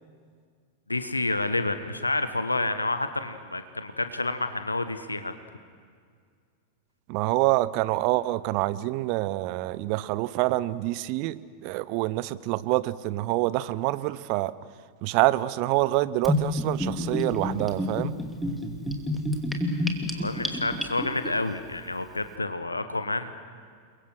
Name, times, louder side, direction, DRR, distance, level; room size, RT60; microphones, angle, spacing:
voice 1, 0.9-5.3 20.1-23.3, left 2 dB, 80° left, 10 dB, 1.2 m, -29 dB
voice 2, 7.1-14.5 15.0-18.1, right 18 dB, 45° right, 17 dB, 0.8 m, -26 dB
Gurgling / Bathtub (filling or washing), 16.2-21.3, left 1 dB, ahead, 2.6 m, -28 dB
29.5 x 23.0 x 6.3 m, 2.1 s
figure-of-eight pair, 90°, 0 cm